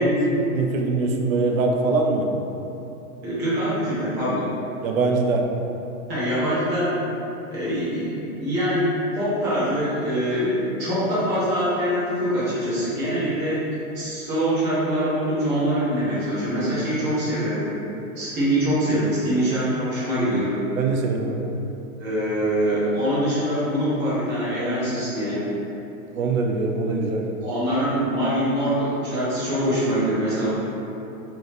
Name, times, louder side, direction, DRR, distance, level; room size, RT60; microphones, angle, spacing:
voice 1, 0.0-2.3 4.8-5.5 16.9-17.0 20.8-21.5 26.1-27.3, right 3 dB, 70° right, 2 dB, 0.7 m, -23 dB
voice 2, 3.2-4.5 6.1-6.9 7.5-13.6 13.9-17.7 18.1-20.5 22.0-25.4 27.4-30.5, equal, 25° right, -10 dB, 1.3 m, -24 dB
3.9 x 3.5 x 3.0 m, 2.9 s
supercardioid pair, 165°, 43 cm